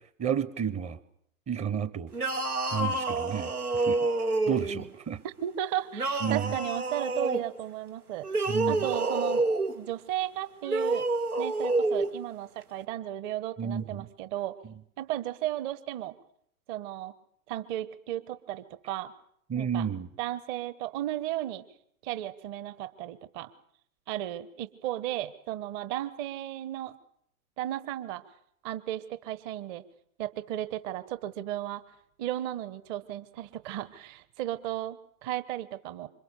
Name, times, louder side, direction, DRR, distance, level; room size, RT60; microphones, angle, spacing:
voice 1, 0.2-1.0 1.5-2.1 2.7-3.5 3.9-4.0 4.5-5.2 6.2-6.5 8.5-8.8 13.6-14.1 19.5-20.1, right 8 dB, 15° right, 17 dB, 1.0 m, -31 dB
sound 1, 2.1-4.9 5.9-7.4 8.2-9.8 10.6-12.1, right 2 dB, 85° right, 2.6 m, -28 dB
voice 2, 5.2-8.3 8.7-9.4 9.7-11.0 11.4-14.6 15.0-16.1 16.7-17.1 17.5-19.1 19.5-19.9 20.2-21.6 22.0-23.5 24.1-26.9 27.6-28.2 28.6-29.8 30.2-31.8 32.2-36.1, right 13 dB, 30° right, 15 dB, 1.3 m, -34 dB
27.5 x 25.0 x 6.8 m, 0.69 s
figure-of-eight pair, 115°, 44 cm